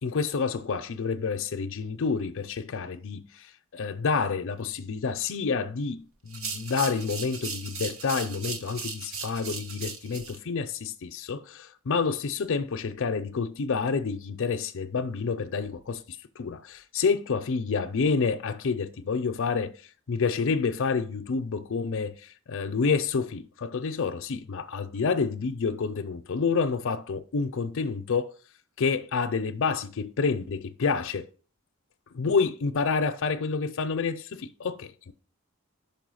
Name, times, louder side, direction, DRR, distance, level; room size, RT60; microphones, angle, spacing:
voice 1, 0.0-3.4 3.7-16.0 16.4-19.7 20.1-22.1 22.5-28.3 28.8-31.3 32.1-35.1, left 5 dB, 60° left, 0.5 m, -28 dB
sound 1, 6.3-10.4, right 5 dB, 75° right, 0.9 m, -37 dB
5.5 x 4.5 x 6.2 m
head